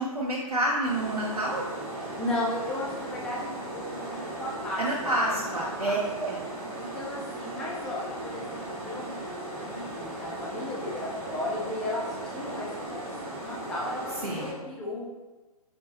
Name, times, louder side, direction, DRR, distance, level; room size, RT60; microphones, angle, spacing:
voice 1, 0.0-1.6 4.8-6.4 14.2-14.5, right 1 dB, 90° right, -5 dB, 0.8 m, -28 dB
sound 1, 0.8-14.5, right 2 dB, 10° right, 1.3 m, -37 dB
voice 2, 2.0-6.0 6.8-15.0, left 1 dB, 5° left, -5 dB, 0.3 m, -35 dB
5.4 x 2.8 x 2.6 m, 1.2 s
figure-of-eight pair, 130°, 19 cm